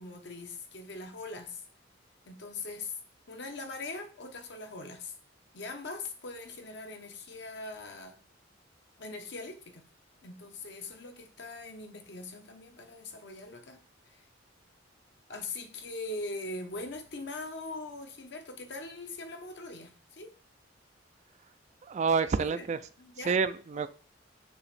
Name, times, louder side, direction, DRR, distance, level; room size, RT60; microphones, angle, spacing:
voice 1, 0.0-1.6 2.2-3.0 3.3-5.1 5.5-8.2 9.0-9.9 10.2-14.3 15.3-20.3 22.4-22.7 23.0-23.3, left 2 dB, 60° left, 1.1 m, -41 dB
voice 2, 21.8-22.8 23.2-23.9, right 5 dB, 35° right, 0.3 m, -28 dB
6.7 x 3.0 x 5.7 m
head